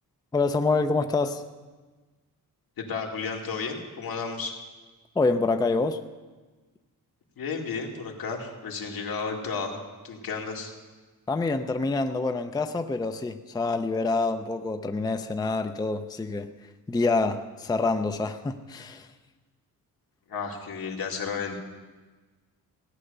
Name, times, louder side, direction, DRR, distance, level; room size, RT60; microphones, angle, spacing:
voice 1, 0.3-1.4 5.2-6.0 11.3-16.5 16.9-19.1, left 3 dB, 10° left, 8 dB, 0.5 m, -26 dB
voice 2, 2.8-4.5 7.4-10.7 20.3-21.6, left 5 dB, 75° left, 0 dB, 2.4 m, -33 dB
16.5 x 9.8 x 6.7 m, 1.3 s
wide cardioid pair, 170°, 36 cm